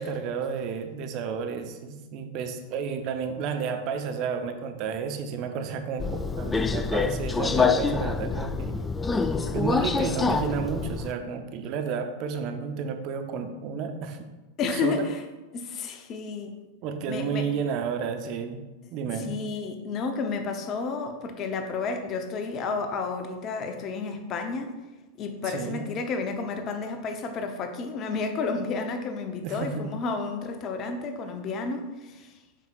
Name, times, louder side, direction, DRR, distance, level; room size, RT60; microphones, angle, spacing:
voice 1, 0.0-8.7 9.5-14.3 14.8-15.1 16.8-18.6 18.9-19.4 25.5-25.8 29.4-29.8, right 6 dB, 45° right, 6 dB, 0.7 m, -31 dB
Subway metro underground, 6.0-11.1, left 4 dB, 15° left, 0.3 m, -26 dB
voice 2, 14.6-15.2 15.5-16.6 17.1-17.5 19.1-24.7 25.2-32.4, left 4 dB, 35° left, 6 dB, 0.7 m, -31 dB
7.2 x 5.6 x 2.4 m, 1.1 s
figure-of-eight pair, 90°, 0 cm